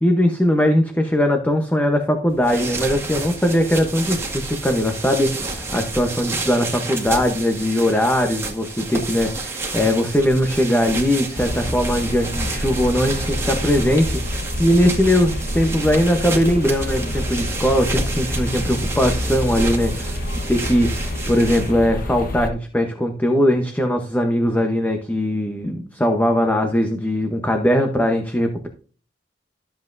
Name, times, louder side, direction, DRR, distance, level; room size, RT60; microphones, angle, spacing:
voice 1, 0.0-20.2 20.5-28.7, equal, 10° left, 4 dB, 0.9 m, -20 dB
sound 1, 2.3-21.9, right 2 dB, 15° right, 1.9 m, -30 dB
sound 2, 11.3-22.5, left 1 dB, 55° left, 1.3 m, -27 dB
13.0 x 7.6 x 2.7 m, 0.40 s
head